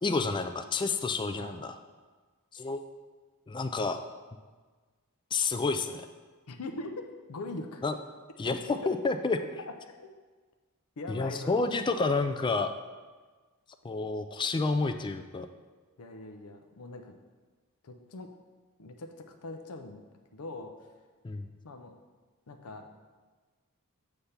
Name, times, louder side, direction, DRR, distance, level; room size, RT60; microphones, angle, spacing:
voice 1, 0.0-1.8 2.5-2.8 3.5-4.0 5.3-6.1 7.8-7.9 8.4-9.4 11.1-12.7 13.8-15.5 21.2-21.5, left 3 dB, 20° left, 9 dB, 0.3 m, -29 dB
voice 2, 6.5-7.8 8.7-9.0 9.4-10.1 11.0-11.7 16.0-17.2 17.8-18.3 18.8-20.0 20.3-20.9 21.6-22.0 22.5-23.0, left 2 dB, 75° left, 5 dB, 0.6 m, -42 dB
8.1 x 3.4 x 5.6 m, 1.4 s
head